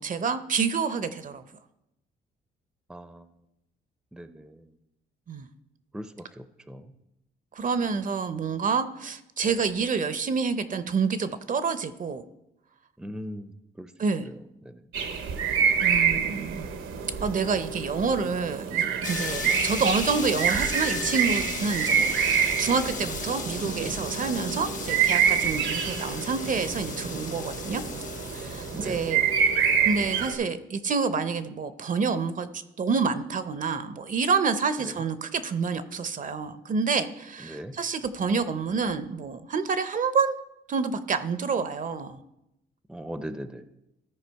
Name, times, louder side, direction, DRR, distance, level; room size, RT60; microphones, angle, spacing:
voice 1, 0.0-1.4 5.3-5.5 7.6-12.2 14.0-14.3 15.8-16.7 17.2-27.8 28.3-29.2 29.8-40.4 40.7-42.2, right 5 dB, 40° right, 12 dB, 0.6 m, -28 dB
voice 2, 2.9-3.3 4.1-4.6 5.9-6.9 13.0-13.5 13.8-13.9 14.2-14.3 14.7-14.8 28.7-29.1 34.8-34.9 37.4-37.7 42.9-43.6, equal, 5° right, 11 dB, 0.6 m, -39 dB
sound 1, 14.9-30.3, right 7 dB, 80° right, 0.9 m, -27 dB
sound 2, 19.0-29.1, left 5 dB, 40° left, 1.0 m, -36 dB
14.0 x 4.8 x 4.6 m, 0.87 s
cardioid pair, 90°, 20 cm